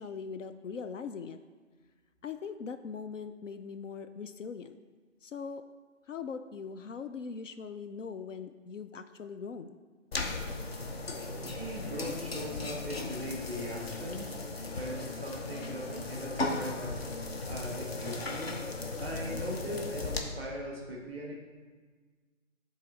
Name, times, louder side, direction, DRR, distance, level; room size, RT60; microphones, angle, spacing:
voice 1, 0.0-1.4 2.2-4.8 5.2-5.6 6.1-9.8, left 6 dB, 70° left, 9 dB, 0.5 m, -41 dB
sound 1, 10.1-20.2, left 3 dB, 50° left, 0.8 m, -37 dB
voice 2, 11.3-14.4 14.7-17.0 17.4-18.5 19.0-21.3, equal, 10° left, -2 dB, 0.8 m, -39 dB
9.3 x 3.9 x 3.9 m, 1.4 s
figure-of-eight pair, 160°, 39 cm